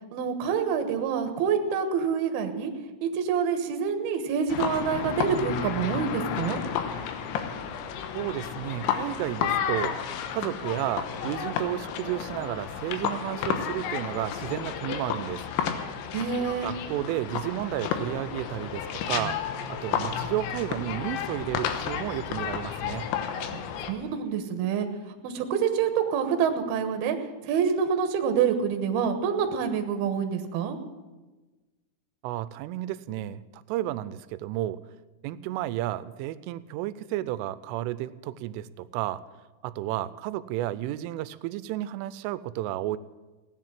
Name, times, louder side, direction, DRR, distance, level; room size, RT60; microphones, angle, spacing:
voice 1, 0.1-2.7 3.0-6.6 16.1-16.7 23.5-23.6 23.9-24.9 25.2-27.2 27.4-30.8, right 7 dB, 65° right, 6 dB, 2.7 m, -27 dB
sound 1, 4.5-23.9, left 8 dB, 75° left, 3.3 m, -32 dB
voice 2, 8.1-10.0 10.3-15.4 16.6-19.4 19.7-23.1 32.2-34.8 35.2-39.2 39.6-43.0, right 14 dB, 90° right, 16 dB, 3.1 m, -32 dB
16.5 x 10.5 x 7.5 m, 1.2 s
omnidirectional pair, 5.6 m